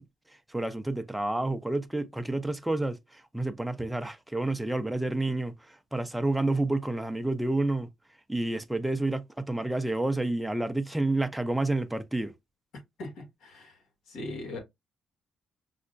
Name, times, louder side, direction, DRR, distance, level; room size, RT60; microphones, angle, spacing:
voice 1, 0.5-5.5 5.9-7.9 8.3-12.3, right 2 dB, 5° right, 0.5 m, -29 dB
voice 2, 13.0-13.8 14.1-14.6, left 2 dB, 80° left, 1.4 m, -39 dB
5.4 x 2.1 x 2.4 m
cardioid pair, 90°, 0 cm